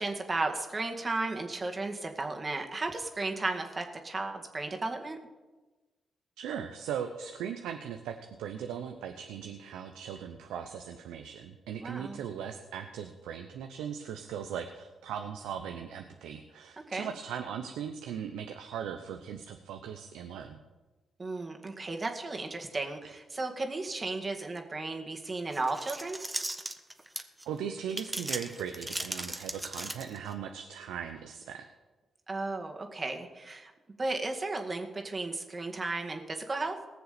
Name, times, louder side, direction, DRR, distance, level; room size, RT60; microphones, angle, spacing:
voice 1, 0.0-5.2 11.8-12.2 16.9-17.1 21.2-26.2 32.3-33.7 34.0-36.8, right 3 dB, 40° right, 3 dB, 2.1 m, -34 dB
voice 2, 6.4-20.6 25.2-25.4 27.4-31.6, right 8 dB, 85° right, 6 dB, 0.8 m, -39 dB
sound 1, 25.5-27.4 27.9-30.3, right 1 dB, 15° right, 1.4 m, -37 dB
18.5 x 6.9 x 6.9 m, 1.2 s
supercardioid pair, 45°, 0 cm